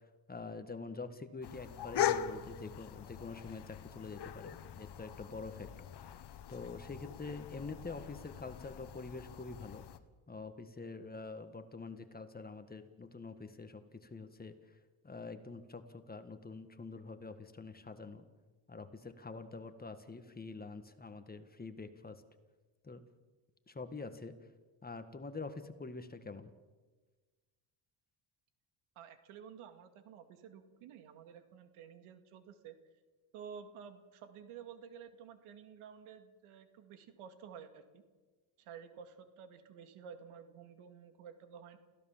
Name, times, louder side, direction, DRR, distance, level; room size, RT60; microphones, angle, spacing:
voice 1, 0.3-6.2 6.5-9.8 10.3-14.5 15.0-18.3 18.7-22.2 22.8-23.0 23.7-24.3 24.8-26.5, left 3 dB, 20° left, 9 dB, 1.7 m, -46 dB
sound 1, 1.4-10.0, left 10 dB, 55° left, 1.4 m, -41 dB
voice 2, 29.0-32.8 33.3-38.0 38.6-41.8, right 7 dB, 85° right, 8 dB, 2.3 m, -52 dB
28.5 x 16.0 x 7.4 m, 1.3 s
cardioid pair, 110°, 49 cm